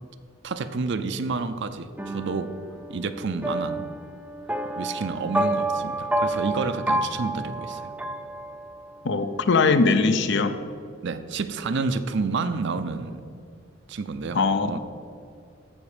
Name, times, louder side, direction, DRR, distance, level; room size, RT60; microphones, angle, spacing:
voice 1, 0.4-2.5 2.9-3.9 4.8-7.9 11.0-13.2 13.9-14.8, right 4 dB, 60° right, 10 dB, 0.6 m, -29 dB
sound 1, 2.0-9.0, right 1 dB, 5° right, 0.5 m, -29 dB
voice 2, 9.0-10.6 14.3-14.8, left 4 dB, 60° left, 10 dB, 0.6 m, -21 dB
14.5 x 5.3 x 5.0 m, 2.5 s
head